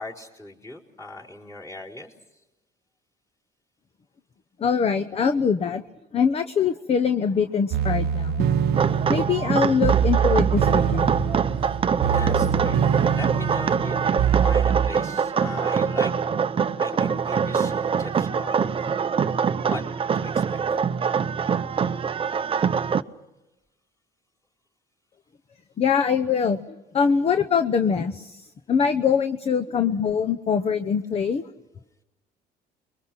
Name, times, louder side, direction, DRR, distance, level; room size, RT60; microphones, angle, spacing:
voice 1, 0.0-2.4 11.5-16.1 16.8-19.0 19.6-19.8 20.1-20.8, left 2 dB, 15° left, -2 dB, 4.6 m, -39 dB
voice 2, 4.6-5.8 6.1-8.4 9.1-11.1 25.8-26.6 26.9-31.4, left 6 dB, 35° left, 10 dB, 0.9 m, -23 dB
Fireworks, 7.2-18.2, left 3 dB, 60° left, 6.7 m, -53 dB
sound 1, 7.7-14.9, right 8 dB, 75° right, 0.9 m, -24 dB
sound 2, 8.7-23.0, right 6 dB, 30° right, 0.7 m, -24 dB
28.5 x 22.5 x 6.1 m, 1.0 s
cardioid pair, 110°, 17 cm